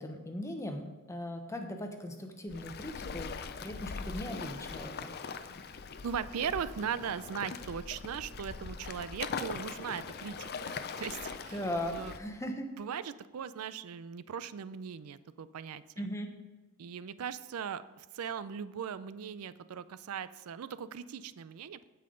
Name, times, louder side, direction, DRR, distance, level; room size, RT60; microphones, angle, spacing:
voice 1, 0.0-5.2 11.5-12.7 16.0-16.3, left 1 dB, 15° left, 5 dB, 0.9 m, -39 dB
Waves surf, 2.5-12.2, left 5 dB, 45° left, 0.5 m, -41 dB
voice 2, 6.0-11.6 11.9-12.2 12.8-15.8 16.8-21.9, right 7 dB, 90° right, 15 dB, 0.4 m, -39 dB
16.0 x 5.6 x 3.8 m, 1.3 s
head